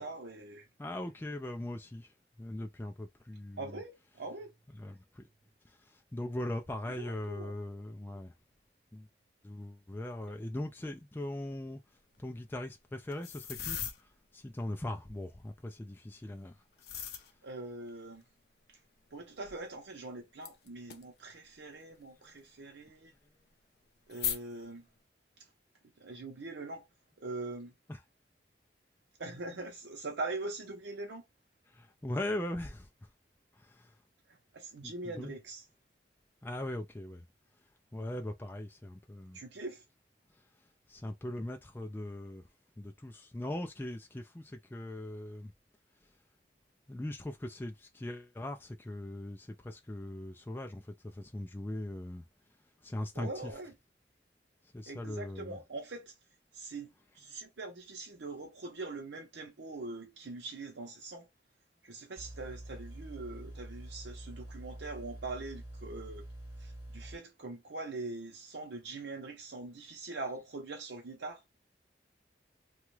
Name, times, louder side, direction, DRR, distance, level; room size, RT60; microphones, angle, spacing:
voice 1, 0.0-0.7 3.6-4.5 7.0-7.5 17.4-18.2 18.7-18.8 19.1-23.1 24.1-24.9 26.0-26.9 27.2-27.7 29.2-31.2 34.3-35.6 39.3-39.8 53.2-53.7 54.9-56.2 56.5-56.9 57.1-61.3 61.8-66.2 66.6-71.4, right 3 dB, 85° right, 0.7 m, -42 dB
voice 2, 0.8-3.8 4.7-5.3 5.6-8.3 8.9-9.1 9.4-11.8 12.2-16.6 17.0-17.2 27.9-28.0 31.7-32.9 33.5-34.0 34.8-35.4 36.4-37.3 37.9-39.4 40.3-40.4 40.9-42.5 42.8-45.5 46.9-52.3 52.8-53.5 54.7-55.6, left 1 dB, 10° left, 0.3 m, -40 dB
sound 1, 13.1-14.0 16.7-17.3 17.9-18.0 19.4-19.6 20.4-21.0 22.4-22.5 24.1-24.6, left 9 dB, 65° left, 0.5 m, -38 dB
sound 2, 62.2-67.2, right 1 dB, 35° left, 1.8 m, -46 dB
2.9 x 2.3 x 3.1 m
head